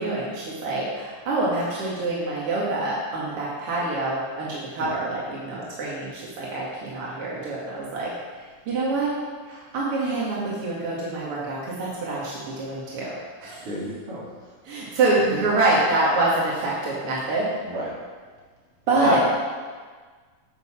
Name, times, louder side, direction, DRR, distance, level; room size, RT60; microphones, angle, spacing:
voice 1, 0.0-8.1 8.6-9.1 9.5-13.6 14.6-17.5 18.9-19.2, right 2 dB, 55° right, -6 dB, 1.6 m, -26 dB
voice 2, 13.6-14.2 17.6-17.9 18.9-19.2, equal, 35° right, -7 dB, 3.2 m, -26 dB
9.5 x 8.2 x 6.1 m, 1.5 s
omnidirectional pair, 5.5 m